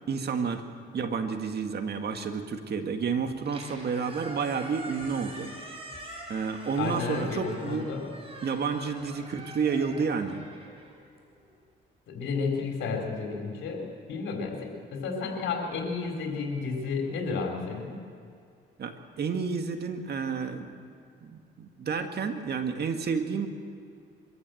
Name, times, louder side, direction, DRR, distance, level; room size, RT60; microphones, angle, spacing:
voice 1, 0.1-0.6 0.9-5.5 6.3-7.9 8.4-10.4 18.8-20.8 21.2-23.5, right 5 dB, 55° right, 6 dB, 1.8 m, -30 dB
Squeak, 3.3-11.6, right 1 dB, 30° right, 5.1 m, -45 dB
voice 2, 6.8-8.1 12.1-18.0, left 4 dB, 80° left, 2 dB, 4.0 m, -32 dB
23.5 x 14.0 x 7.8 m, 2.3 s
cardioid pair, 90°, 20 cm